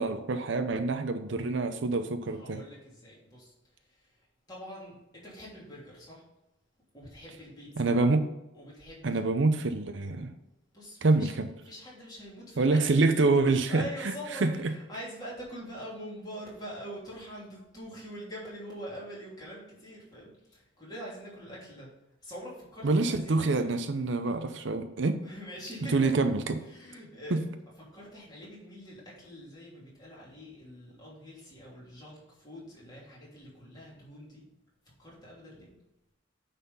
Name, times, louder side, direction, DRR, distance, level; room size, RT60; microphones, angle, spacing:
voice 1, 0.0-2.6 7.8-8.3 9.0-10.3 11.0-11.5 12.6-14.1 14.4-14.5 22.8-25.2 25.9-26.6 27.3-27.4, right 3 dB, 65° right, 9 dB, 0.6 m, -26 dB
voice 2, 2.3-4.1 4.5-6.2 6.9-7.8 8.5-9.3 10.7-11.4 11.6-13.3 13.7-21.9 22.2-23.8 25.2-26.1 26.6-27.4 27.8-34.4 35.0-35.7, equal, 20° left, -6 dB, 3.0 m, -44 dB
9.3 x 4.2 x 5.5 m, 0.92 s
head